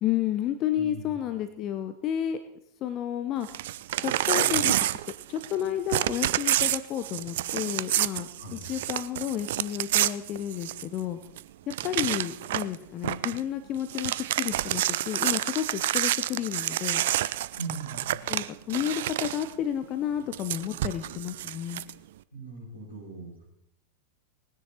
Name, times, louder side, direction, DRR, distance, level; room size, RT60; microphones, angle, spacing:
voice 1, 0.0-2.4 2.8-3.5 4.0-5.0 5.3-11.2 11.7-17.0 18.3-21.8, left 10 dB, 35° left, 11 dB, 0.8 m, -31 dB
voice 2, 0.8-1.2 8.4-8.6 17.6-18.2 22.3-23.4, right 3 dB, 85° left, -5 dB, 7.2 m, -40 dB
Crumpling crinkling / Tearing, 3.4-5.6 5.9-11.0 11.4-11.5 11.7-12.7 13.0-13.4 13.8-19.5 20.3-21.9, right 14 dB, 55° right, 0.4 m, -28 dB
19.0 x 10.0 x 4.4 m, 0.77 s
figure-of-eight pair, 90°, 0 cm